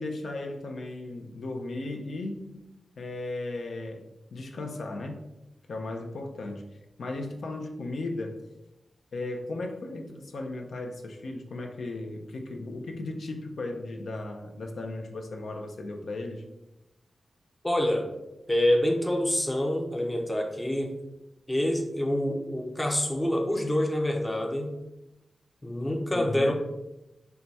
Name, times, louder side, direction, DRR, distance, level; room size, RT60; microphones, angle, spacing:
voice 1, 0.0-2.7 3.0-5.2 5.7-6.7 7.0-8.4 9.1-16.4 26.1-26.5, left 2 dB, 75° left, 3 dB, 0.5 m, -36 dB
voice 2, 17.6-18.1 18.5-20.9 21.5-24.7 25.6-26.5, left 1 dB, 10° left, 2 dB, 0.5 m, -26 dB
4.5 x 2.2 x 4.0 m, 0.93 s
wide cardioid pair, 150°, 0 cm